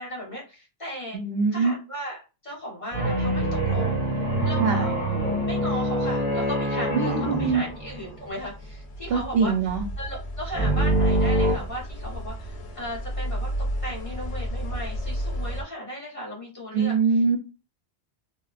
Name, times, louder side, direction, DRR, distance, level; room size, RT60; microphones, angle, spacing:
voice 1, 0.0-1.2 1.5-4.0 4.4-5.0 5.5-9.5 10.0-13.5 13.8-16.9, equal, 30° left, -4 dB, 1.1 m, -36 dB
voice 2, 1.1-1.7 4.6-4.9 6.9-7.6 9.1-9.8 16.7-17.4, right 5 dB, 70° right, 3 dB, 0.8 m, -23 dB
sound 1, 2.9-8.4 10.5-11.5, right 1 dB, 10° left, 1.1 m, -24 dB
sound 2, 7.6-15.6, equal, 80° left, 0.9 m, -33 dB
2.8 x 2.1 x 2.3 m, 0.30 s
omnidirectional pair, 1.1 m